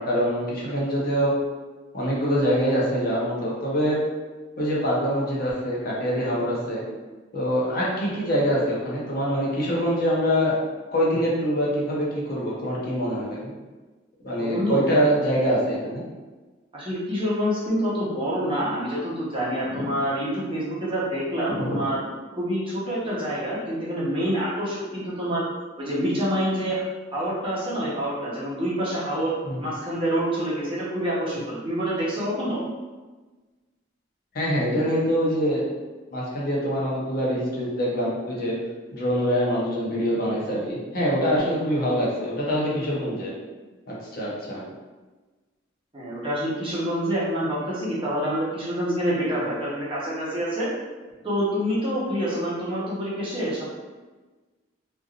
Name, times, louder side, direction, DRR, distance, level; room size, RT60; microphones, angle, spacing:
voice 1, 0.0-1.3 1.9-4.0 4.6-6.8 7.3-10.6 10.9-13.5 14.2-16.0 19.7-19.8 21.5-21.8 29.4-29.6 34.3-35.8 36.1-38.5 38.9-43.3 43.9-44.6, equal, 50° left, -5 dB, 0.7 m, -24 dB
voice 2, 14.4-14.9 16.7-22.0 22.3-25.5 25.8-26.8 27.1-29.3 29.6-32.6 45.9-50.7 51.2-53.6, equal, 25° right, -8 dB, 0.8 m, -27 dB
3.2 x 2.5 x 2.4 m, 1.3 s
head